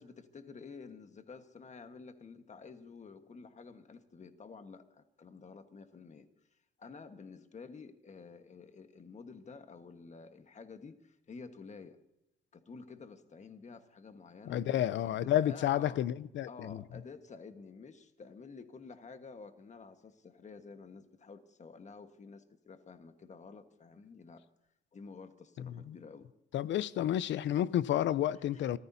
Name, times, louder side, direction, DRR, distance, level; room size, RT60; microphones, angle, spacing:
voice 1, 0.0-6.3 6.8-12.0 12.5-16.0 16.5-24.4 24.9-26.3 26.5-26.7 28.4-28.8, left 4 dB, 35° left, 1.4 m, -51 dB
voice 2, 14.4-16.8 25.6-26.0 26.5-28.8, left 11 dB, 70° left, 0.5 m, -31 dB
28.5 x 14.5 x 2.7 m
cardioid pair, 90°, 20 cm